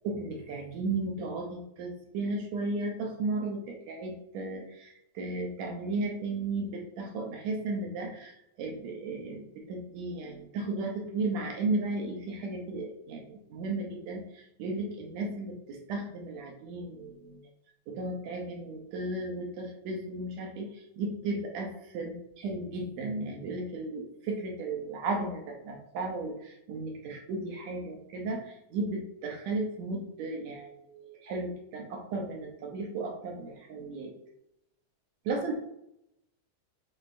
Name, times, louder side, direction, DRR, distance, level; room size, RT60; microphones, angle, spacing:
voice 1, 0.0-17.4 17.9-22.1 22.4-34.1 35.3-35.5, right 2 dB, 70° right, 1 dB, 1.9 m, -35 dB
6.4 x 3.1 x 2.5 m, 0.81 s
omnidirectional pair, 3.6 m